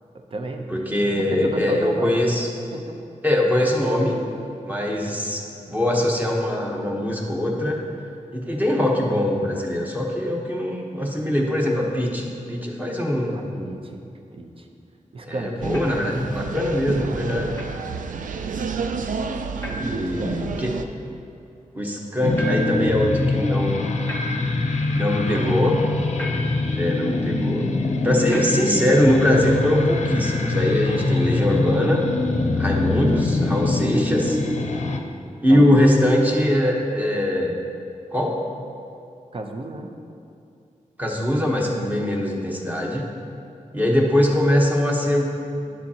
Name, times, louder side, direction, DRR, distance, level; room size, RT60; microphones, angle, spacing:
voice 1, 0.1-0.8 1.2-2.2 2.7-3.0 13.3-14.0 14.3-14.7 15.1-15.7 19.8-20.4 25.3-25.7 26.3-26.5 35.5-36.1 39.3-39.9, right 2 dB, 45° right, 4 dB, 0.7 m, -32 dB
voice 2, 0.7-2.5 3.2-4.2 4.7-5.4 5.7-7.8 8.3-13.4 15.2-17.6 19.8-20.8 21.7-23.9 24.9-25.8 26.7-27.7 28.0-32.1 32.6-34.4 35.4-37.6 38.1-38.4 41.0-43.0 43.7-45.3 45.6-45.7, left 1 dB, 15° right, -1 dB, 1.0 m, -22 dB
sound 1, 15.6-20.8, right 5 dB, 85° right, 0.4 m, -30 dB
sound 2, 15.7-16.1 17.5-17.8 19.6-20.0 22.3-22.9 24.1-24.7 26.2-26.7 28.3-28.8, equal, 15° left, 0.9 m, -33 dB
sound 3, 22.2-35.0, left 2 dB, 60° left, 0.6 m, -23 dB
9.8 x 7.3 x 2.9 m, 2.5 s
wide cardioid pair, 95°, 13 cm